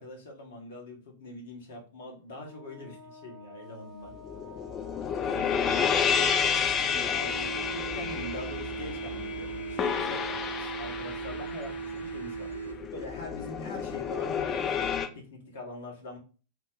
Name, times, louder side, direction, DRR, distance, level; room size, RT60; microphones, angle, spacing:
voice 1, 0.0-4.1 5.2-12.6 12.9-16.2, left 1 dB, 60° left, 1 dB, 1.0 m, -43 dB
Wind instrument woodwind instrument, 2.3-10.1, left 4 dB, 20° right, 0.6 m, -50 dB
sound 1, 4.1-15.1, left 7 dB, 30° left, 0.4 m, -30 dB
sound 2, 7.2-13.2, right 6 dB, 85° right, 0.4 m, -38 dB
2.9 x 2.1 x 3.7 m, 0.36 s
figure-of-eight pair, 90°, 0 cm